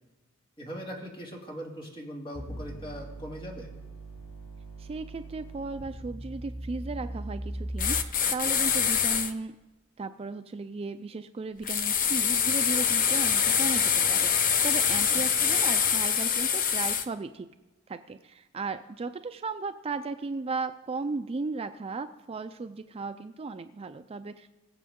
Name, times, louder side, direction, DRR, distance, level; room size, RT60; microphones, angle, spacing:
voice 1, 0.6-3.7 14.9-15.2, equal, 25° left, -1 dB, 2.2 m, -40 dB
sound 1, 2.3-8.3, right 1 dB, 85° left, 3.8 m, -39 dB
voice 2, 4.8-9.5 10.0-17.5 17.9-24.5, right 3 dB, 25° right, 9 dB, 0.3 m, -36 dB
sound 2, 7.8-9.3 11.7-17.0, left 7 dB, 40° left, 0.7 m, -25 dB
21.0 x 7.6 x 3.7 m, 1.2 s
head